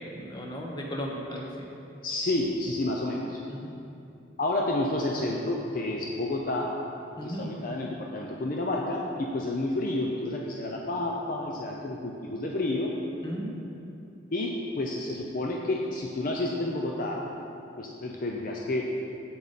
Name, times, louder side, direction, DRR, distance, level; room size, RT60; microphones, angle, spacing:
voice 1, 0.1-1.5 3.5-3.6 7.2-7.4 13.2-13.5, equal, 25° left, -1 dB, 0.9 m, -35 dB
voice 2, 2.0-3.4 4.4-6.7 7.2-12.9 14.3-17.2 17.8-18.9, left 2 dB, 45° left, -1 dB, 0.5 m, -30 dB
7.8 x 7.0 x 4.1 m, 2.7 s
head